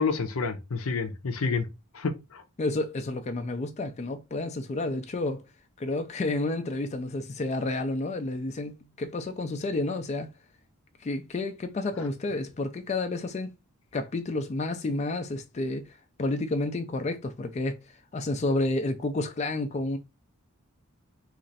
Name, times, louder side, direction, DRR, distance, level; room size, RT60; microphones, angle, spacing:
voice 1, 0.0-1.7 1.9-2.4, left 4 dB, 80° left, 0.6 m, -29 dB
voice 2, 2.6-5.4 5.8-10.3 11.0-13.6 13.9-20.0, left 2 dB, 35° left, 0.4 m, -30 dB
3.0 x 2.5 x 4.0 m
head